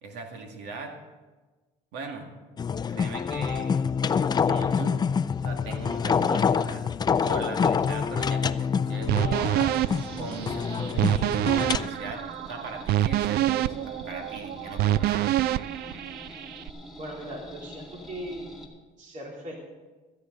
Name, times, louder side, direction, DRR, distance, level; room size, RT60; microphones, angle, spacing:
voice 1, 0.0-1.0 1.9-2.3 2.9-3.9 4.4-5.1 5.4-6.9 7.2-9.8 10.2-11.2 11.5-15.3, right 4 dB, 85° right, 3 dB, 2.1 m, -39 dB
sound 1, 2.6-11.9, left 6 dB, 25° left, 0.4 m, -26 dB
sound 2, 9.1-16.7, right 13 dB, 70° right, 0.4 m, -27 dB
sound 3, 9.4-18.7, left 1 dB, ahead, 2.2 m, -45 dB
voice 2, 17.0-18.5 19.0-19.6, right 1 dB, 50° right, -2 dB, 3.4 m, -38 dB
16.0 x 13.5 x 4.0 m, 1.3 s
cardioid pair, 110°, 17 cm